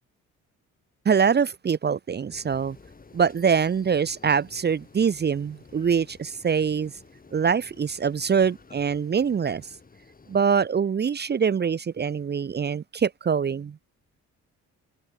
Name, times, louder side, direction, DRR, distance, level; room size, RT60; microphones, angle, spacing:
voice 1, 1.0-2.8 3.1-6.9 7.3-9.7 10.3-13.8, right 6 dB, 35° right, 0.8 m, -24 dB
sound 1, 2.3-10.6, left 4 dB, 30° left, 6.1 m, -52 dB
cardioid pair, 90°, 30 cm